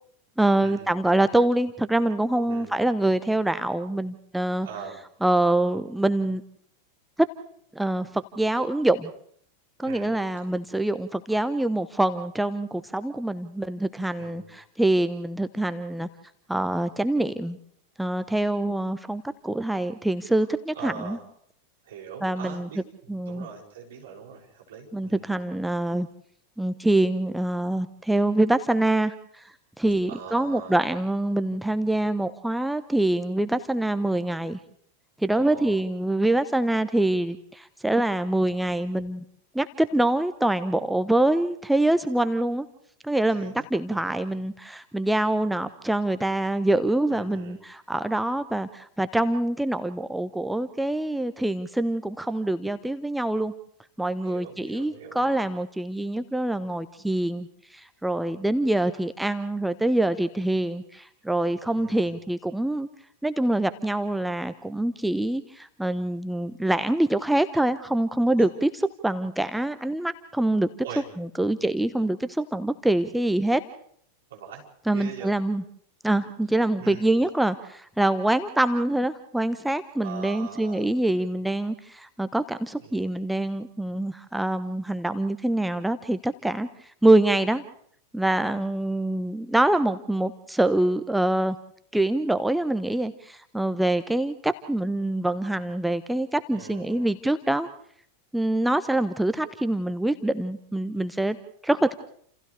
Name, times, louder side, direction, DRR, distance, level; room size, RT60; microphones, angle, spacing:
voice 1, 0.4-4.7 5.2-6.4 7.2-7.3 7.7-9.1 9.8-16.1 16.5-17.6 18.0-21.2 22.2-22.7 23.1-23.5 24.9-26.1 26.6-34.6 35.2-39.2 39.5-42.7 43.0-53.5 54.0-62.9 63.2-68.7 69.0-70.7 71.2-73.6 74.9-75.6 76.0-87.6 88.1-91.6 91.9-97.7 98.3-101.4 101.6-101.9, right 1 dB, 5° right, 11 dB, 0.8 m, -25 dB
voice 2, 4.6-5.0 9.8-10.6 14.2-14.5 20.7-21.3 21.8-22.8 23.3-25.3 30.1-30.8 35.3-35.8 43.3-43.7 43.9-44.2 47.1-47.6 54.2-55.4 61.7-62.1 68.4-68.5 70.8-71.1 74.3-74.6 74.9-75.3 76.8-77.2 80.0-80.9 82.8-83.1 96.5-97.1, right 7 dB, 60° right, -1 dB, 6.8 m, -41 dB
29.5 x 28.5 x 3.4 m, 0.65 s
figure-of-eight pair, 90°, 0 cm